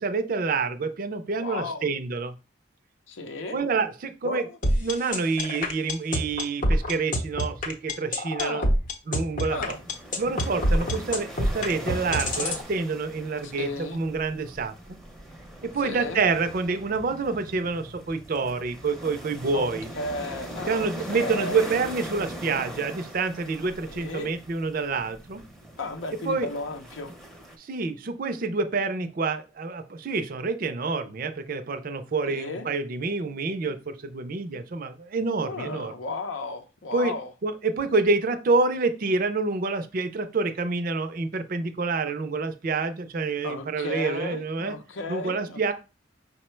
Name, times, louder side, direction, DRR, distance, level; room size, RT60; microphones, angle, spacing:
voice 1, 0.0-2.3 3.5-4.4 4.8-8.6 9.1-9.6 10.2-15.0 15.6-19.9 20.7-25.4 26.2-26.5 27.6-35.9 36.9-37.1 37.4-44.8 45.1-45.7, right 4 dB, 45° right, 0.4 m, -27 dB
voice 2, 1.4-1.9 3.1-3.6 4.2-4.6 8.4-8.7 9.5-9.8 13.4-14.0 15.8-16.2 19.5-21.7 23.9-24.3 25.8-27.1 32.3-32.7 35.5-37.3 43.4-45.7, left 2 dB, 80° left, 0.6 m, -34 dB
sound 1, 4.6-12.6, equal, 40° left, 0.7 m, -25 dB
sound 2, 9.5-27.6, right 1 dB, ahead, 0.6 m, -41 dB
5.4 x 2.1 x 4.3 m
head